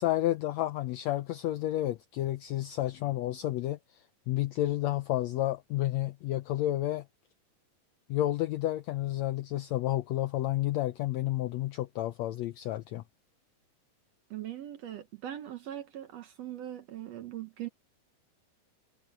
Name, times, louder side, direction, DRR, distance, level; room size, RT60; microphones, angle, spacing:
voice 1, 0.0-3.8 4.3-7.0 8.1-13.0, left 14 dB, 80° left, 1.6 m, -30 dB
voice 2, 14.3-17.7, right 12 dB, 65° right, 1.8 m, -40 dB
omnidirectional pair, 3.8 m